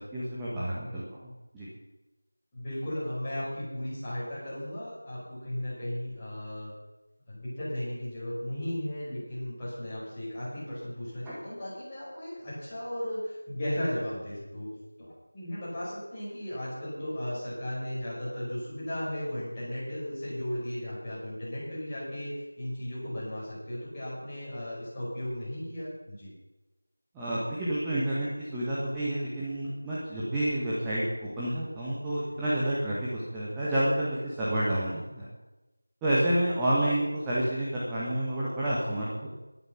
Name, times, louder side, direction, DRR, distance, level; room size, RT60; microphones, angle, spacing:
voice 1, 0.0-1.7 11.2-11.3 27.1-35.3 36.0-39.1, right 1 dB, 5° right, -10 dB, 1.7 m, -29 dB
voice 2, 2.5-6.7 7.3-14.7 15.0-22.3 22.6-26.3, left 1 dB, 10° left, -12 dB, 6.8 m, -35 dB
15.0 x 12.0 x 6.0 m, 1.1 s
figure-of-eight pair, 170°, 0 cm